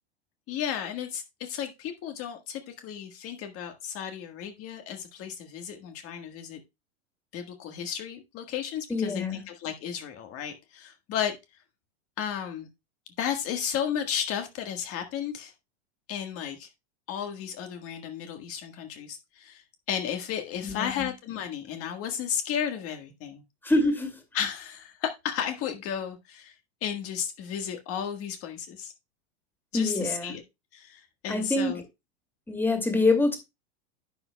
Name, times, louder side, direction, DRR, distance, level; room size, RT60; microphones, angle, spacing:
voice 1, 0.5-6.6 7.3-11.3 12.2-12.7 13.2-15.5 16.1-16.7 17.1-19.6 19.9-23.4 24.3-26.5 26.8-28.9 29.7-30.4 30.7-31.8, left 8 dB, 45° left, 1.6 m, -33 dB
voice 2, 8.9-9.4 20.6-21.1 23.6-24.2 29.7-30.3 31.3-31.8 32.5-33.4, left 2 dB, 5° left, 2.3 m, -25 dB
11.0 x 7.9 x 2.2 m
supercardioid pair, 115°, 33 cm